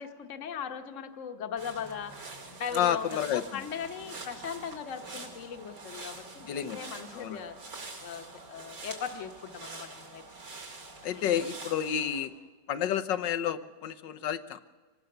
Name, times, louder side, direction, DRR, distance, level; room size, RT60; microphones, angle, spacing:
voice 1, 0.0-7.6 8.0-10.2 11.1-11.3, left 7 dB, 50° left, 6 dB, 1.4 m, -39 dB
sound 1, 1.6-12.2, right 3 dB, 75° right, 3.1 m, -45 dB
voice 2, 2.7-3.4 6.5-6.8 7.1-7.4 11.0-12.3 12.7-14.6, left 9 dB, 85° left, 12 dB, 1.5 m, -30 dB
25.0 x 19.0 x 6.7 m, 1.4 s
omnidirectional pair, 1.9 m